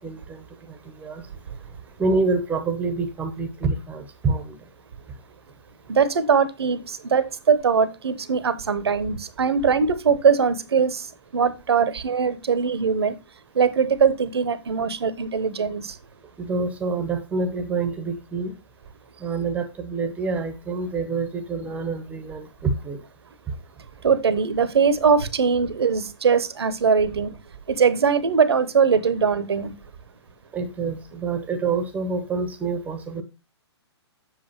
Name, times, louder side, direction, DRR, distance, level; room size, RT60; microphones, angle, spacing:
voice 1, 0.0-1.3 1.9-4.6 16.4-18.6 19.2-23.0 30.5-33.2, right 4 dB, 10° right, 0.8 m, -27 dB
voice 2, 5.9-11.1 11.3-13.2 13.5-16.0 24.0-27.3 27.7-29.7, right 6 dB, 65° right, 0.8 m, -21 dB
7.5 x 6.7 x 2.9 m
figure-of-eight pair, 120°, 14 cm